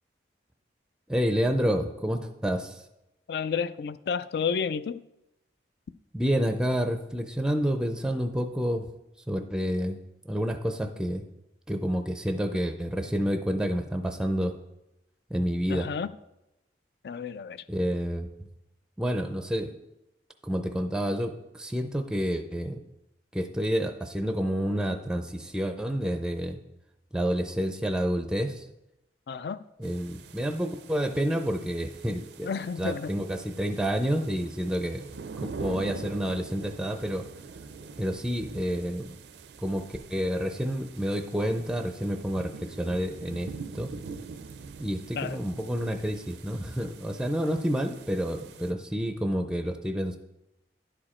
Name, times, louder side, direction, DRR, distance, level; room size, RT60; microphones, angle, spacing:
voice 1, 1.1-2.8 6.1-8.9 9.3-11.3 11.7-14.5 15.3-15.9 17.7-18.5 19.0-19.7 20.4-22.8 23.3-26.6 27.1-28.7 29.8-32.5 32.8-35.1 35.4-37.3 38.0-39.1 39.6-43.9 44.8-50.2, equal, 5° right, 6 dB, 0.4 m, -29 dB
voice 2, 3.3-5.0 15.7-16.1 17.0-17.6 29.3-29.6 32.4-33.1 45.1-45.4, left 6 dB, 60° left, 15 dB, 0.3 m, -31 dB
sound 1, 29.8-48.7, right 4 dB, 70° right, 0.4 m, -44 dB
10.5 x 4.9 x 4.3 m, 0.91 s
head